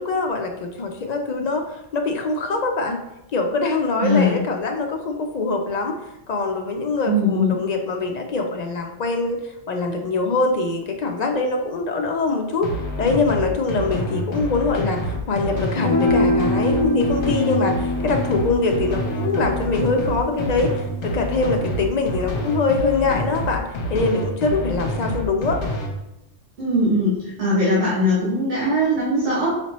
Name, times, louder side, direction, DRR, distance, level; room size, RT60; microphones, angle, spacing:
voice 1, 0.0-3.0 3.3-6.0 6.3-9.4 9.7-12.7 13.0-20.7 21.0-23.6 23.9-25.6, left 3 dB, 55° left, 3 dB, 0.5 m, -23 dB
voice 2, 4.0-4.4 7.0-7.6 26.6-27.1 27.4-29.5, left 1 dB, 75° right, -8 dB, 1.5 m, -20 dB
sound 1, 12.6-25.9, left 1 dB, 70° left, 1.1 m, -27 dB
sound 2, 15.8-22.3, left 1 dB, 35° right, 1.7 m, -25 dB
5.0 x 2.8 x 3.0 m, 0.89 s
omnidirectional pair, 1.2 m